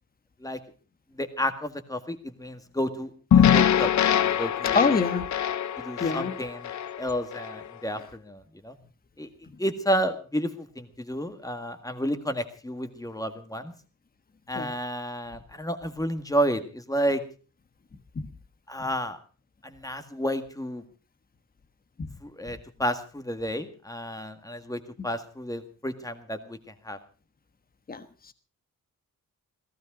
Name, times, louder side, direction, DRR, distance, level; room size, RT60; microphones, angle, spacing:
voice 1, 1.1-3.9 4.3-4.9 5.8-6.7 7.0-8.8 9.2-9.3 9.6-13.7 14.5-17.2 18.7-19.2 19.6-20.8 22.2-27.0, equal, 10° left, 8 dB, 1.8 m, -31 dB
sound 1, 3.3-7.6, left 9 dB, 60° left, 0.7 m, -23 dB
voice 2, 4.7-5.3 6.0-6.4 14.5-14.7 18.1-18.3 22.0-22.1 22.5-22.6 27.9-28.3, left 4 dB, 30° left, 10 dB, 1.3 m, -26 dB
17.5 x 16.0 x 5.0 m, 0.37 s
wide cardioid pair, 170°, 32 cm